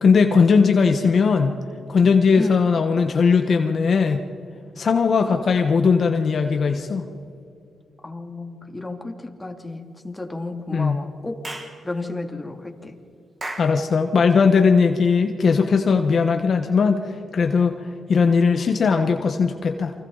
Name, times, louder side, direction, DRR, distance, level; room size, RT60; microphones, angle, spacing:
voice 1, 0.0-1.5 1.9-4.2 4.8-7.1 10.7-11.0 13.6-17.8 18.1-19.9, left 5 dB, 60° left, 5 dB, 1.3 m, -18 dB
voice 2, 8.0-11.4 11.8-13.0, left 2 dB, 20° left, 3 dB, 2.7 m, -32 dB
Clapping / Chirp tweet, 11.4-11.8 13.4-13.8, right 2 dB, 35° right, 4.9 m, -33 dB
28.5 x 24.5 x 4.1 m, 2.5 s
cardioid pair, 75°, 0 cm